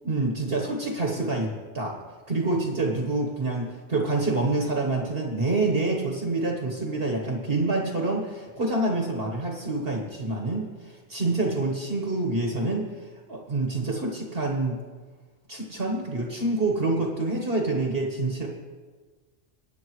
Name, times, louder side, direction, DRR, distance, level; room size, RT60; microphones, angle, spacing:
voice 1, 0.0-2.0 2.3-14.8 15.5-18.5, right 2 dB, 50° right, 0 dB, 1.6 m, -27 dB
21.0 x 9.1 x 3.2 m, 1.4 s
omnidirectional pair, 1.3 m